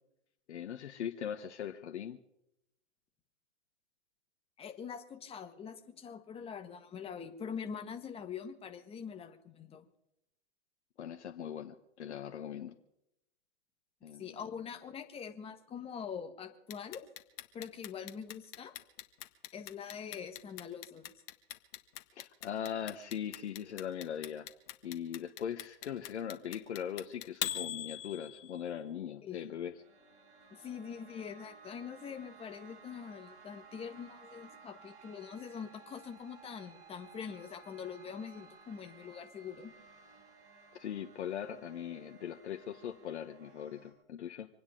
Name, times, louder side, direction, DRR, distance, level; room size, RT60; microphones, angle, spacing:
voice 1, 0.5-2.2 11.0-12.7 14.0-14.4 22.1-24.5 24.8-29.7 40.7-44.5, left 9 dB, 75° left, 6 dB, 1.2 m, -40 dB
voice 2, 4.6-9.9 14.2-17.0 17.5-18.7 19.5-21.0 29.2-29.5 30.5-39.7, left 7 dB, 15° left, 6 dB, 1.6 m, -44 dB
Clock, 16.7-28.7, left 12 dB, 50° left, 1.6 m, -41 dB
sound 1, 29.4-43.9, right 5 dB, 65° right, 6.7 m, -58 dB
Wind instrument woodwind instrument, 30.4-35.1, right 5 dB, 45° right, 5.2 m, -59 dB
26.0 x 9.7 x 5.2 m, 0.81 s
hypercardioid pair, 130°, 35 cm